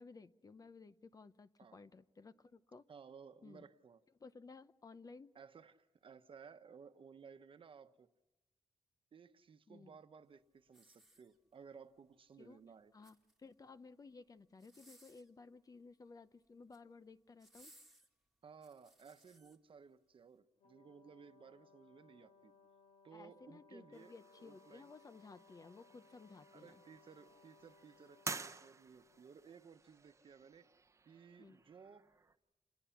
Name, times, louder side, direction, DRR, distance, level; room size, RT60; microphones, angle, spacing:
voice 1, 0.0-2.8 3.4-3.6 4.2-5.3 9.7-10.0 12.4-12.6 12.9-17.7 23.1-26.8 31.4-31.6, left 4 dB, 30° left, 13 dB, 0.7 m, -57 dB
voice 2, 2.9-4.0 5.3-8.1 9.1-12.9 18.4-22.5 23.0-24.9 26.5-30.7 31.0-32.1, right 6 dB, 50° right, 9 dB, 1.1 m, -58 dB
sound 1, 10.7-11.7 12.8-13.6 14.5-15.4 16.4-16.9 17.4-19.6 20.2-20.3, right 1 dB, 5° right, 2.0 m, -65 dB
Brass instrument, 20.6-29.3, left 4 dB, 70° left, 2.9 m, -66 dB
sound 2, 23.9-32.4, right 4 dB, 25° right, 0.9 m, -52 dB
28.5 x 20.5 x 5.9 m, 1.0 s
wide cardioid pair, 165°, 12 cm